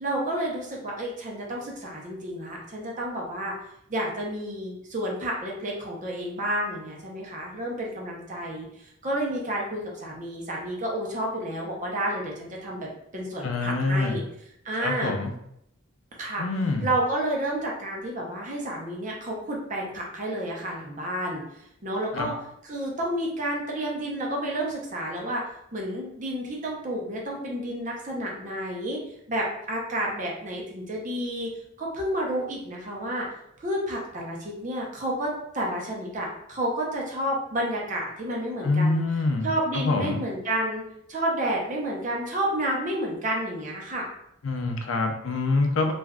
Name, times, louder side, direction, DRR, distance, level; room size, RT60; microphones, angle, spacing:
voice 1, 0.0-3.5 3.9-8.7 9.0-14.2 14.6-15.1 16.2-16.4 16.8-21.4 21.8-22.3 22.6-25.4 25.7-29.0 29.3-31.5 31.8-33.3 33.6-39.0 39.4-44.1, right 1 dB, 40° right, -2 dB, 0.7 m, -30 dB
voice 2, 13.4-14.2 14.8-15.3 16.4-16.9 22.1-22.3 38.6-40.2 44.4-45.9, left 3 dB, 75° left, 4 dB, 0.5 m, -25 dB
3.4 x 2.5 x 2.3 m, 0.76 s
head